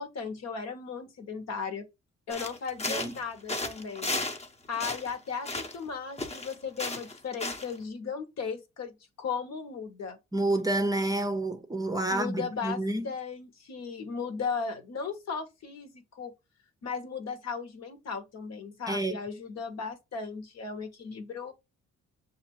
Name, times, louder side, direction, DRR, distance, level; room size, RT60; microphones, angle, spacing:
voice 1, 0.0-1.9 2.3-4.1 4.7-10.2 12.1-12.8 13.0-16.3 16.8-21.5, left 5 dB, 60° left, 1.2 m, -36 dB
sound 1, 2.3-3.2 3.5-4.5 4.7-5.9 6.2-7.8, left 2 dB, 20° left, 0.9 m, -34 dB
voice 2, 10.3-13.1 18.9-19.2, right 1 dB, 10° right, 0.6 m, -29 dB
6.5 x 2.5 x 3.1 m
cardioid pair, 90°, 30 cm